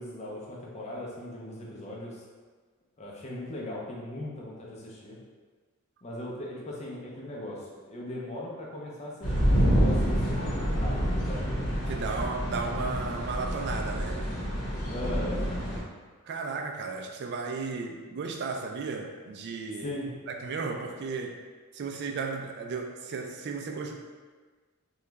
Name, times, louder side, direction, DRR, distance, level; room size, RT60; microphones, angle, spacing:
voice 1, 0.0-2.2 3.0-5.2 6.0-11.5 14.9-15.4 19.8-20.1, left 1 dB, 30° left, -4 dB, 0.5 m, -39 dB
sound 1, 9.2-15.8, equal, 85° left, 1.0 m, -27 dB
voice 2, 11.9-14.2 16.3-20.0 20.3-21.4 21.7-23.9, right 4 dB, 50° right, 3 dB, 0.3 m, -34 dB
2.9 x 2.3 x 3.3 m, 1.4 s
head